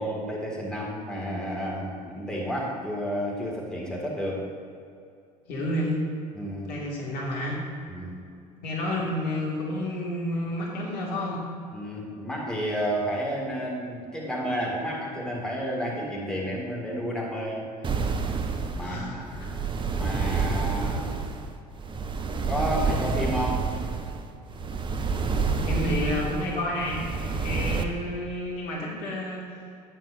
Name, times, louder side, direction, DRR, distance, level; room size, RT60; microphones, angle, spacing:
voice 1, 0.0-4.5 6.3-6.7 7.9-8.2 11.7-17.7 18.7-19.4 19.9-21.1 22.5-23.7 27.4-27.5, equal, 5° left, -3 dB, 2.1 m, -31 dB
voice 2, 5.5-6.0 6.7-7.6 8.6-11.4 18.8-19.5 25.6-27.0 27.3-29.5, left 1 dB, 50° left, -3 dB, 2.1 m, -30 dB
sound 1, 17.8-27.8, right 4 dB, 25° right, 0.7 m, -28 dB
12.0 x 9.1 x 2.6 m, 2.4 s
figure-of-eight pair, 65°, 21 cm